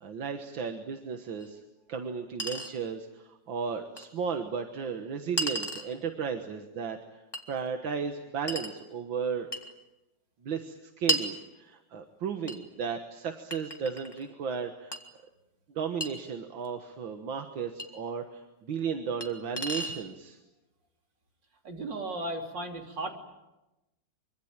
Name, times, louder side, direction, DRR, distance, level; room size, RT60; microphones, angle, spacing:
voice 1, 0.0-1.6 1.9-7.2 7.5-9.5 10.4-15.0 15.7-20.4, right 6 dB, 85° right, 6 dB, 2.2 m, -34 dB
Chink clink, 1.4-1.5 2.4-2.7 4.0-4.1 5.4-5.9 7.3-7.5 8.5-8.8 9.5-9.7 11.1-11.3 12.5-12.6 13.5-14.2 14.9-15.0 16.0-16.1 17.8-17.9 19.2-19.3 19.6-20.0, equal, 10° left, 2.2 m, -32 dB
voice 2, 21.6-23.1, right 2 dB, 70° right, 3 dB, 4.1 m, -35 dB
25.0 x 25.0 x 8.9 m, 1.0 s
omnidirectional pair, 2.0 m